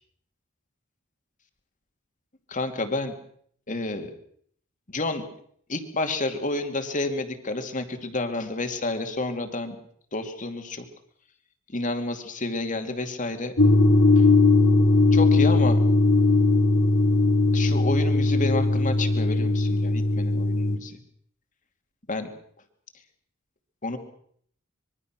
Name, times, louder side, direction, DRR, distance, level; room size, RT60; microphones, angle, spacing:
voice 1, 2.5-3.1 3.7-4.1 4.9-5.3 5.7-9.8 10.1-10.8 11.7-13.6 14.2-14.3 15.1-15.8 17.5-21.0 22.1-22.3 23.8-24.0, left 2 dB, 40° left, 6 dB, 2.6 m, -30 dB
sound 1, 13.6-20.8, left 2 dB, 65° left, 2.4 m, -19 dB
25.0 x 22.5 x 6.1 m, 0.63 s
head